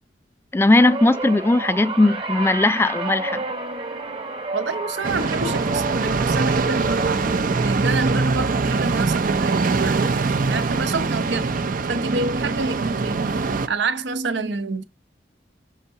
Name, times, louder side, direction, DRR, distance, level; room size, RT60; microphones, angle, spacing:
voice 1, 0.5-3.4, left 2 dB, 15° left, 0.3 m, -18 dB
sound 1, 0.7-11.1 11.5-11.9 13.0-13.1, right 2 dB, 30° right, 1.0 m, -33 dB
voice 2, 4.5-11.5 11.9-13.3 13.7-14.8, right 3 dB, 75° right, 0.9 m, -27 dB
sound 2, 5.0-13.7, right 4 dB, 50° right, 0.6 m, -23 dB
6.5 x 2.7 x 5.5 m
head